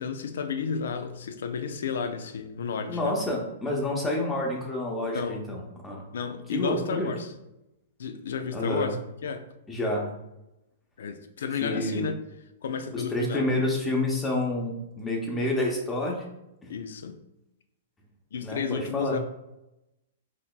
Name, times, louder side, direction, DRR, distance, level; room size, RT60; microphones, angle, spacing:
voice 1, 0.0-3.2 5.1-5.4 6.1-7.3 8.0-9.5 11.0-12.1 12.6-13.6 16.7-17.2 18.3-19.2, left 6 dB, 70° left, 8 dB, 0.4 m, -32 dB
voice 2, 2.9-6.1 6.5-7.1 8.5-8.9 9.7-10.1 11.6-12.1 12.9-16.2 16.6-16.7 18.4-19.2, left 1 dB, 15° left, -1 dB, 0.8 m, -28 dB
4.1 x 2.8 x 2.3 m, 0.91 s
hypercardioid pair, 115°, 0 cm